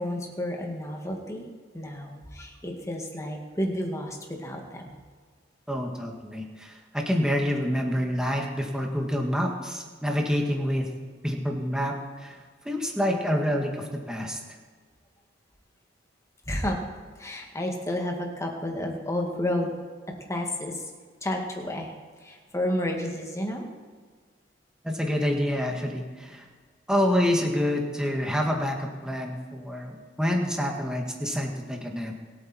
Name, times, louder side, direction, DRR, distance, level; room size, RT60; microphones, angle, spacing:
voice 1, 0.0-1.4 1.7-4.9 16.5-16.8 17.2-19.7 20.3-20.9 21.2-21.9 22.2-23.7, left 1 dB, 15° left, 1 dB, 2.2 m, -31 dB
voice 2, 5.7-10.9 11.2-12.4 12.7-14.4 24.8-26.5 26.9-32.1, equal, 5° right, 1 dB, 2.0 m, -27 dB
26.0 x 8.9 x 4.5 m, 1.5 s
head